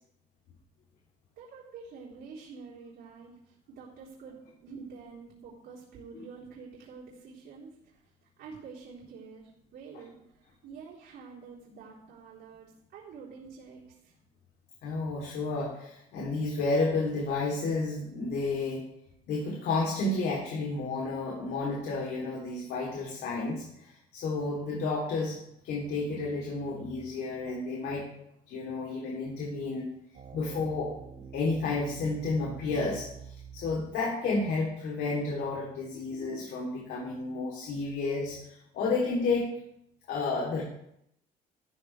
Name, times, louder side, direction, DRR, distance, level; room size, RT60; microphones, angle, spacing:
voice 1, 1.4-8.0 8.4-14.1, right 5 dB, 75° right, -7 dB, 4.0 m, -48 dB
voice 2, 14.8-18.8 19.3-25.4 25.6-28.1 28.5-29.9 30.3-30.9 31.3-39.5 40.1-40.6, left 3 dB, 75° left, -2 dB, 3.3 m, -31 dB
sound 1, 30.1-34.1, right 7 dB, 50° right, 1.5 m, -46 dB
14.5 x 13.5 x 3.4 m, 0.78 s
cardioid pair, 110°, 17 cm